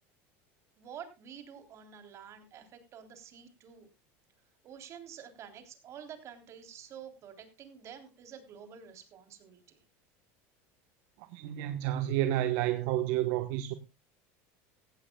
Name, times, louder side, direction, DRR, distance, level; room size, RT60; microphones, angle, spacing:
voice 1, 0.8-3.9 4.6-9.8, right 8 dB, 40° right, 3.6 m, -49 dB
voice 2, 11.3-13.7, right 13 dB, 65° right, 1.2 m, -30 dB
17.0 x 14.5 x 2.3 m
supercardioid pair, 125°, 7 cm